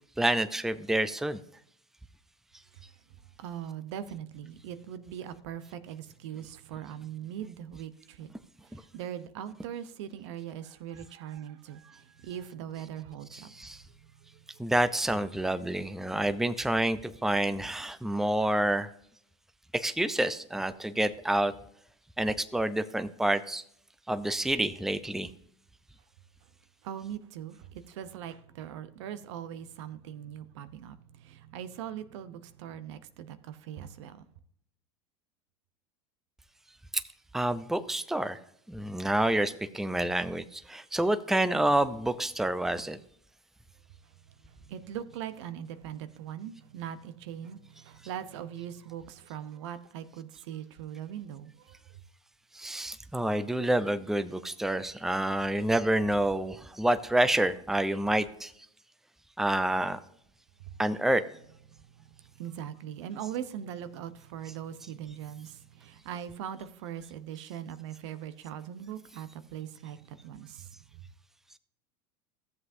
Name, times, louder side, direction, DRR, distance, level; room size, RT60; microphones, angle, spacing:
voice 1, 0.2-1.4 8.7-8.8 13.3-13.8 14.6-18.9 19.7-21.5 22.2-23.6 24.1-25.3 36.9-37.0 37.3-38.4 38.7-43.0 52.5-58.5 59.4-60.0 60.8-61.2, right 1 dB, ahead, 0.6 m, -28 dB
voice 2, 3.4-8.3 8.9-13.5 26.8-34.3 44.5-51.8 62.0-62.1 62.4-70.7, right 10 dB, 75° right, 0.8 m, -41 dB
14.0 x 7.7 x 2.7 m
hypercardioid pair, 95°, 15 cm